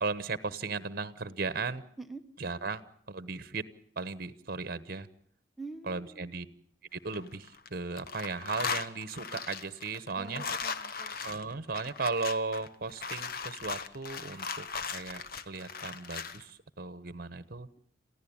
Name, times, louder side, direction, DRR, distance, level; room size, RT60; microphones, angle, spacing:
voice 1, 0.0-1.8 2.4-2.8 3.1-3.7 4.0-5.1 5.9-6.5 6.9-10.4 11.2-17.7, right 4 dB, 55° right, 15 dB, 1.1 m, -36 dB
voice 2, 5.6-6.3 10.2-11.1, right 3 dB, ahead, 4 dB, 1.4 m, -45 dB
sound 1, 6.9-7.7 8.0-16.4, left 5 dB, 55° left, 1.1 m, -38 dB
27.5 x 15.5 x 8.7 m, 0.62 s
head